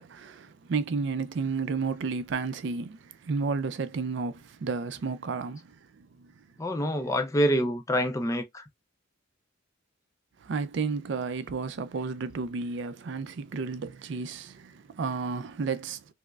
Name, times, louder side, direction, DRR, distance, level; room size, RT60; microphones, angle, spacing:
voice 1, 0.0-3.0 3.2-5.7 10.4-16.0, right 4 dB, 60° right, 0.4 m, -32 dB
voice 2, 6.6-8.6, equal, 15° left, 0.4 m, -26 dB
4.6 x 2.0 x 2.3 m
head